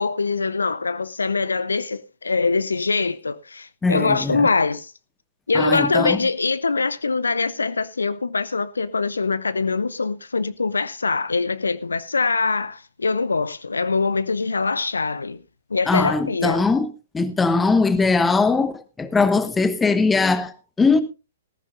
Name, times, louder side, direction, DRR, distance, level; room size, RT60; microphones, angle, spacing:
voice 1, 0.0-4.9 5.5-15.4 15.7-16.7, left 4 dB, 70° left, 0.7 m, -23 dB
voice 2, 3.8-4.5 5.5-6.2 15.9-21.0, left 4 dB, 10° left, 1.2 m, -20 dB
19.0 x 14.5 x 2.6 m
figure-of-eight pair, 115°, 0 cm